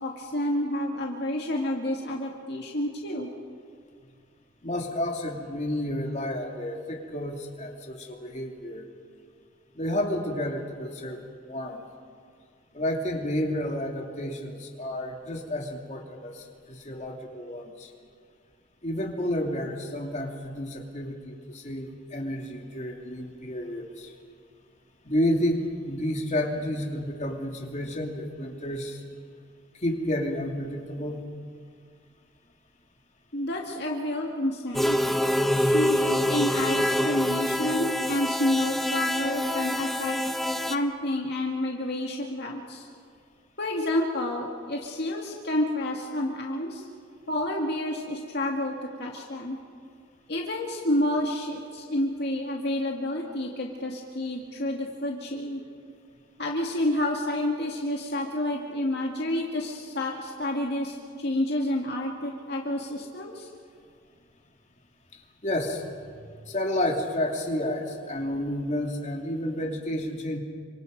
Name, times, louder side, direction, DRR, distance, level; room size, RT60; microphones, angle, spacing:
voice 1, 0.0-3.3 33.3-35.0 35.6-40.2 40.6-42.9 43.6-46.9 47.3-49.6 50.3-55.6 56.4-63.5, left 1 dB, 55° left, 0 dB, 2.1 m, -29 dB
voice 2, 4.6-8.8 9.7-11.8 12.7-17.9 18.8-24.1 25.0-29.0 29.7-31.2 65.1-70.4, left 1 dB, 35° left, 1 dB, 2.7 m, -31 dB
sound 1, 34.7-40.8, equal, ahead, 0.8 m, -26 dB
29.5 x 25.5 x 5.3 m, 2.1 s
head